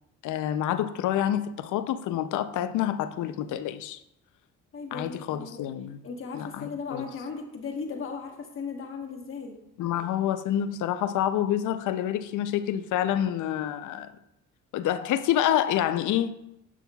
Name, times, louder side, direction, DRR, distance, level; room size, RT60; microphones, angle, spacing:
voice 1, 0.2-4.0 4.9-6.0 6.3-7.1 9.8-14.1 14.7-16.3, left 11 dB, 80° left, 0.6 m, -27 dB
voice 2, 4.7-5.7 6.0-9.6, left 5 dB, 45° left, 1.2 m, -37 dB
11.0 x 6.2 x 2.3 m
cardioid pair, 90°, 30 cm